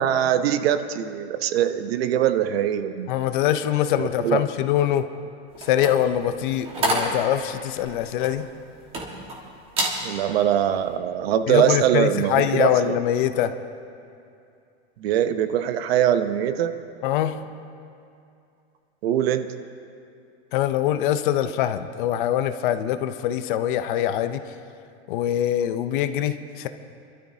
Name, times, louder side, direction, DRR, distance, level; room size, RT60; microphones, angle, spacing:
voice 1, 0.0-3.3 4.0-4.4 10.0-12.7 15.0-16.7 19.0-19.6, right 10 dB, 65° right, 10 dB, 0.8 m, -22 dB
voice 2, 3.1-5.1 5.6-8.5 11.5-13.5 17.0-17.4 20.5-24.4 25.1-26.7, left 11 dB, 50° left, 10 dB, 0.6 m, -23 dB
sound 1, 5.5-9.4 9.7-10.0 10.5-10.7, right 1 dB, 15° right, 1.6 m, -28 dB
27.0 x 12.5 x 2.8 m, 2.5 s
supercardioid pair, 165°, 33 cm